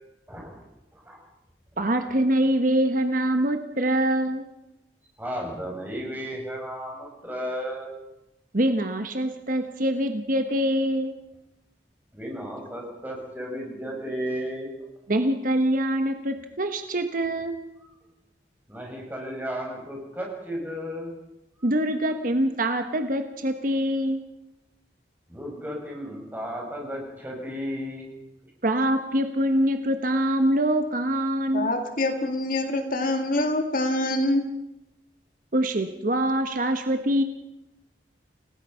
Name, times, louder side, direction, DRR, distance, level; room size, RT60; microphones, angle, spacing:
voice 1, 0.9-1.2 5.2-7.9 12.1-14.7 18.7-21.1 25.3-28.1, equal, 10° right, -2 dB, 6.9 m, -34 dB
voice 2, 1.8-4.4 8.5-11.1 15.1-17.5 21.6-24.2 28.6-31.7 35.5-37.2, right 1 dB, 50° right, 7 dB, 1.2 m, -24 dB
voice 3, 31.5-34.4, left 1 dB, 50° left, 6 dB, 2.1 m, -25 dB
29.5 x 17.5 x 5.7 m, 0.92 s
head